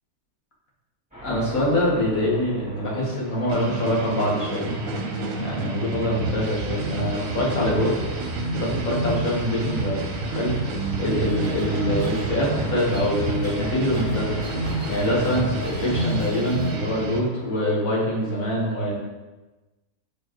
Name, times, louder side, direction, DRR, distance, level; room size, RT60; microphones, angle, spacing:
sound 1, 1.1-18.4, right 1 dB, 5° right, 2.0 m, -40 dB
voice 1, 1.2-4.7 5.4-8.0 8.5-10.0 10.3-10.5 11.0-14.5 14.9-18.9, equal, 65° left, -3 dB, 1.9 m, -24 dB
sound 2, 3.5-17.2, right 2 dB, 65° right, 1.1 m, -29 dB
sound 3, 11.3-16.8, left 2 dB, 80° left, 2.4 m, -39 dB
7.3 x 4.6 x 3.0 m, 1.1 s
omnidirectional pair, 1.6 m